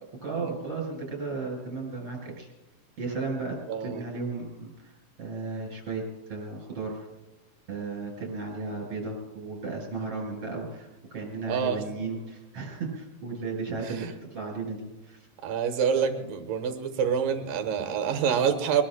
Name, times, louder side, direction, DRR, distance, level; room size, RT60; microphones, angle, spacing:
voice 1, 0.2-2.5 3.0-6.0 6.3-7.1 7.7-15.3, right 3 dB, 45° right, -1 dB, 5.1 m, -35 dB
voice 2, 3.7-4.0 11.5-11.8 13.9-14.1 15.4-18.8, right 7 dB, 80° right, 6 dB, 2.9 m, -27 dB
23.0 x 20.5 x 2.2 m, 1.1 s
omnidirectional pair, 3.9 m